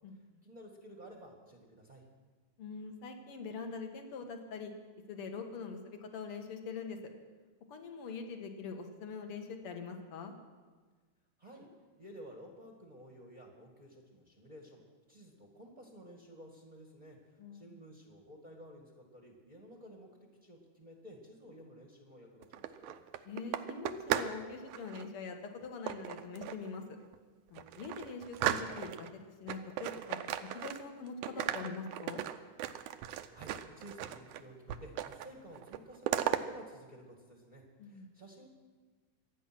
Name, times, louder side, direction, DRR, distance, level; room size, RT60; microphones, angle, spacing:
voice 1, 0.1-2.0 11.4-11.7 12.0-14.8 15.1-23.0 33.3-38.5, equal, 20° right, 0 dB, 1.1 m, -53 dB
voice 2, 2.6-4.7 5.1-7.0 7.7-10.3 17.4-17.7 23.3-26.8 27.5-29.1 29.4-32.2 37.8-38.1, left 5 dB, 50° left, 5 dB, 2.1 m, -43 dB
sound 1, 22.4-24.4 24.7-25.1 25.9-26.7 27.1-27.2 27.6-29.1 29.5-31.0 31.2-34.4 34.7-35.3 35.6-36.4, right 12 dB, 75° right, 2.1 m, -36 dB
25.5 x 9.3 x 6.1 m, 1.4 s
omnidirectional pair, 3.7 m